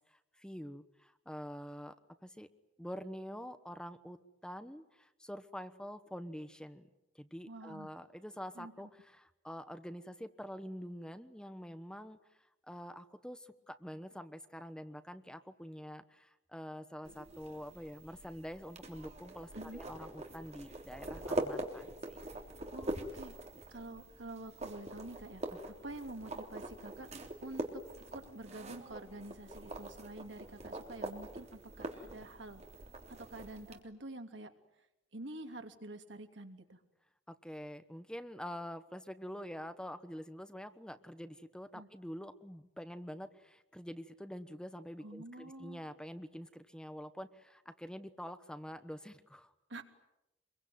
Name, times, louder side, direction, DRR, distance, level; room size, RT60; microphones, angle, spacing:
voice 1, 0.1-1.9 2.2-2.5 2.8-6.9 7.1-12.2 12.7-22.2 22.6-22.8 25.5-25.6 37.3-49.5, equal, 5° left, 10 dB, 1.1 m, -46 dB
voice 2, 7.5-7.9 8.5-8.9 19.5-19.8 22.7-23.3 23.7-27.1 27.4-27.8 28.1-32.6 33.1-34.5 35.1-36.8 41.7-41.9 45.0-45.8 49.7-49.8, right 2 dB, 75° right, 5 dB, 2.9 m, -47 dB
sound 1, 17.0-33.8, right 1 dB, 40° right, 3.4 m, -44 dB
26.0 x 23.0 x 9.4 m, 0.89 s
head